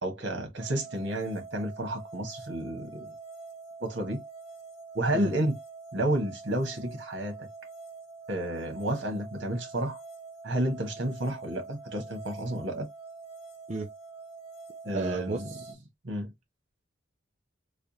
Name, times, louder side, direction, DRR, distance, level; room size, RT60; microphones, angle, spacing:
voice 1, 0.0-3.1 3.8-4.2 4.9-5.6 5.9-7.5 8.3-10.0 10.4-12.9 14.8-15.5 16.0-16.3, right 1 dB, 60° right, 1.3 m, -31 dB
sound 1, 0.6-15.7, right 4 dB, 85° left, 0.9 m, -46 dB
voice 2, 14.9-15.8, right 3 dB, 35° right, 0.4 m, -33 dB
3.3 x 2.3 x 4.0 m
head